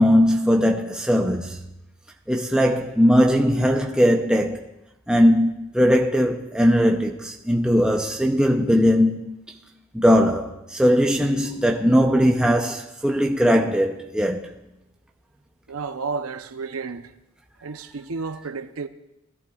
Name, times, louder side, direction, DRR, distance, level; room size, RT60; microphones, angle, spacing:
voice 1, 0.0-1.6 2.3-4.7 5.1-9.6 9.9-14.4, equal, 5° right, 0.6 m, -19 dB
voice 2, 15.7-17.1 17.6-18.9, right 4 dB, 85° right, 0.8 m, -31 dB
20.0 x 14.0 x 2.4 m
head